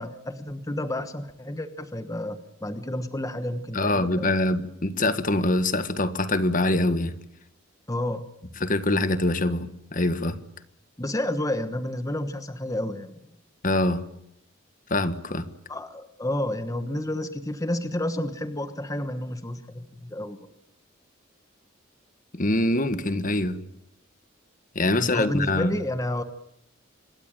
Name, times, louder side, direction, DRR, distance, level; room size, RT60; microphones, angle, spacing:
voice 1, 0.0-4.4 7.9-8.3 11.0-13.3 15.7-20.4 24.9-26.2, left 1 dB, 15° left, 10 dB, 1.2 m, -30 dB
voice 2, 3.7-7.1 8.6-10.4 13.6-14.0 14.9-15.5 22.3-23.6 24.7-25.7, left 2 dB, 40° left, 12 dB, 1.5 m, -24 dB
26.5 x 21.5 x 8.9 m, 0.77 s
head